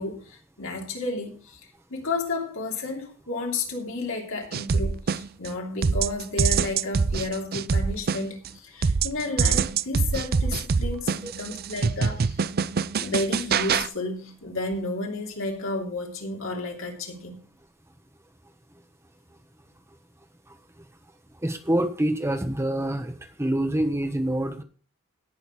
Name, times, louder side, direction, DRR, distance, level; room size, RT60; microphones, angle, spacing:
voice 1, 0.0-1.6 1.9-12.4 13.0-17.4, left 2 dB, 70° left, 1 dB, 3.0 m, -32 dB
sound 1, 4.5-5.5 5.8-8.5 8.8-13.9, right 5 dB, 50° right, 0.5 m, -24 dB
voice 2, 20.5-20.9 21.3-24.6, right 1 dB, 15° right, 7 dB, 1.2 m, -27 dB
17.5 x 6.5 x 4.7 m, 0.38 s
head